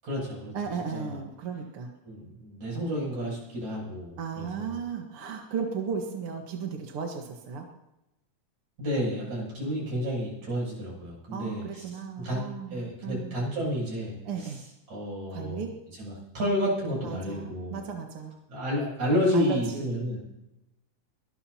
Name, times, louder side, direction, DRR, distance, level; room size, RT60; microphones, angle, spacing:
voice 1, 0.0-0.5 0.9-1.2 2.0-4.7 8.8-11.8 12.2-12.4 12.7-14.6 14.9-15.7 16.0-17.8 18.5-20.2, equal, 70° right, -5 dB, 9.5 m, -30 dB
voice 2, 0.5-1.9 4.2-7.7 11.3-13.4 14.2-14.6 15.3-15.7 17.0-18.4 19.3-19.9, right 6 dB, 50° right, 2 dB, 2.2 m, -35 dB
23.0 x 20.0 x 2.9 m, 0.94 s
omnidirectional pair, 3.4 m